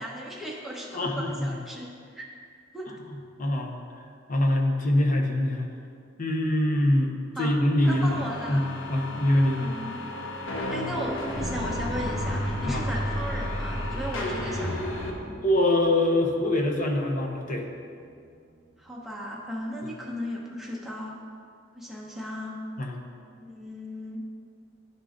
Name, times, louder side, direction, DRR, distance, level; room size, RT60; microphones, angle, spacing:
voice 1, 0.0-1.9 2.1-2.3 2.7-2.9 7.3-7.5 7.9-8.6 9.5-10.0 10.5-14.8 15.2-15.3 18.8-21.2 21.7-22.6 23.4-24.2, equal, ahead, -4 dB, 0.9 m, -36 dB
voice 2, 0.9-1.5 2.9-3.0 3.4-3.8 4.3-5.7 6.2-7.1 7.4-8.2 8.5-9.7 12.7-12.8 15.4-17.7 19.8-19.9 22.8-23.0, left 1 dB, 45° left, 1 dB, 0.7 m, -24 dB
sound 1, 7.8-15.1, left 1 dB, 85° left, 0.9 m, -32 dB
sound 2, 14.6-20.4 20.7-20.8, right 2 dB, 35° right, 0.5 m, -50 dB
11.0 x 3.8 x 3.6 m, 2.3 s
head